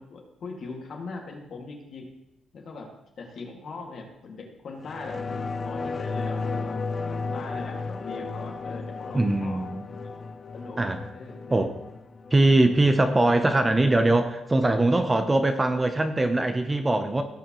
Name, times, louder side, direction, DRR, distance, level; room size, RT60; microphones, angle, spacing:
voice 1, 0.0-2.1 2.5-6.8 7.1-10.1 10.5-10.8 11.1-11.6 12.8-13.0, left 3 dB, 55° left, 1 dB, 2.1 m, -40 dB
sound 1, 4.8-13.8 14.2-14.3, left 4 dB, 35° left, 0.5 m, -34 dB
voice 2, 9.1-9.8 10.8-11.0 11.5-11.8 12.3-17.2, right 2 dB, 15° right, 7 dB, 0.7 m, -22 dB
16.5 x 7.1 x 3.1 m, 0.87 s
cardioid pair, 120°, 0 cm